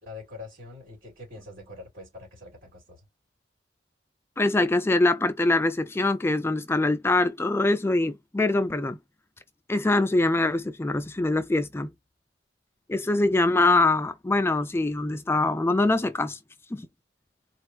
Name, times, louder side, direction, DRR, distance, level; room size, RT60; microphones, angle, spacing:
voice 1, 0.0-3.0, left 3 dB, 55° right, 3.1 m, -44 dB
voice 2, 4.4-9.0 9.7-11.9 12.9-16.4 16.7-16.9, left 2 dB, 15° left, 0.4 m, -23 dB
4.3 x 2.5 x 3.1 m
head